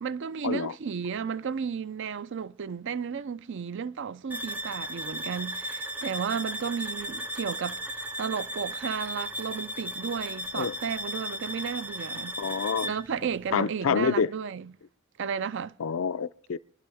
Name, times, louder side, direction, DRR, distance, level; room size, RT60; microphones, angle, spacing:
voice 1, 0.0-7.8 8.2-12.4 12.8-14.7 15.2-15.7, right 6 dB, 60° right, 0.5 m, -33 dB
sound 1, 4.3-13.1, equal, 10° right, 0.5 m, -36 dB
voice 2, 12.4-12.9 13.5-14.3 15.8-16.6, left 6 dB, 75° left, 0.5 m, -27 dB
26.0 x 11.5 x 3.5 m
head